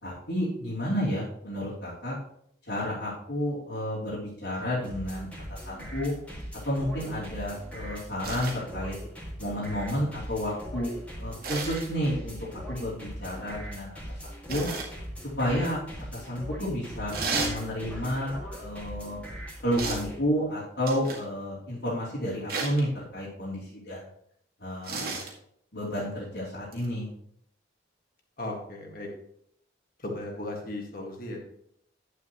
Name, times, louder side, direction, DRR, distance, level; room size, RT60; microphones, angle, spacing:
voice 1, 0.0-2.2 2.7-6.1 6.6-8.9 9.4-10.9 11.2-14.7 15.4-15.8 16.1-19.2 19.6-24.0 24.6-25.2 25.7-27.1, equal, 80° left, -10 dB, 3.2 m, -31 dB
sound 1, 4.8-20.2, equal, 5° left, 2.1 m, -40 dB
sound 2, 8.2-8.6 11.4-11.9 14.5-14.9 17.1-17.6 19.8-20.1 20.9-21.3 22.5-22.8 24.8-25.3 26.7-26.9, right 3 dB, 55° right, 2.0 m, -32 dB
voice 2, 28.4-29.1 30.0-31.4, left 1 dB, 50° left, 1 dB, 1.9 m, -36 dB
10.5 x 8.3 x 3.1 m, 0.70 s
head